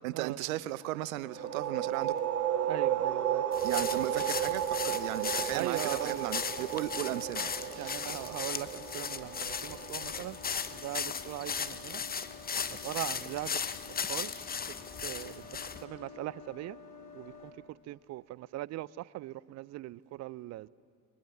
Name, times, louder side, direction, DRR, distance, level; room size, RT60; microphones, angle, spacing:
voice 1, 0.0-2.2 3.6-8.3, right 16 dB, 65° right, 0.9 m, -36 dB
sound 1, 1.3-17.5, left 5 dB, 85° left, 2.5 m, -51 dB
sound 2, 1.3-10.7, right 10 dB, 85° right, 0.9 m, -33 dB
voice 2, 2.7-3.4 5.5-6.3 7.8-10.4 10.7-12.0 12.7-13.6 14.1-14.3 15.0-16.8 17.1-20.7, right 16 dB, 35° right, 0.5 m, -40 dB
sound 3, 3.5-15.8, left 6 dB, 20° left, 1.1 m, -37 dB
29.0 x 23.5 x 7.2 m
figure-of-eight pair, 65°, 45 cm